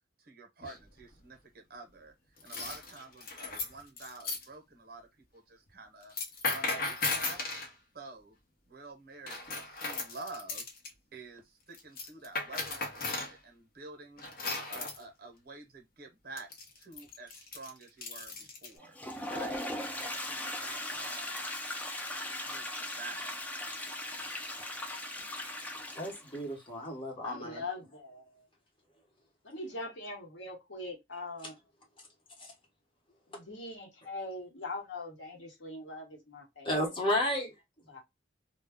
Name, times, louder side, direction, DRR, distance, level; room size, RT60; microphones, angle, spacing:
voice 1, 0.2-2.1 2.4-5.1 5.3-6.1 6.5-7.7 7.9-8.4 8.7-10.6 11.1-14.2 14.7-16.5 16.8-19.0 19.3-19.6 20.0-21.5 22.5-23.3, right 3 dB, 55° right, 0.7 m, -49 dB
sound 1, 0.6-1.0 2.4-4.4 6.0-7.7 9.3-10.9 11.7-13.3 14.2-15.0 16.4-18.7, left 3 dB, 50° left, 0.7 m, -36 dB
Toilet flush, 18.8-26.4, left 1 dB, 10° left, 0.4 m, -38 dB
voice 2, 26.0-27.6 32.4-32.5 36.6-37.5, left 1 dB, 30° left, 1.0 m, -32 dB
voice 3, 27.2-28.4 29.4-31.6 33.3-36.9 37.9-38.0, left 2 dB, 85° left, 1.0 m, -42 dB
2.2 x 2.1 x 3.4 m
head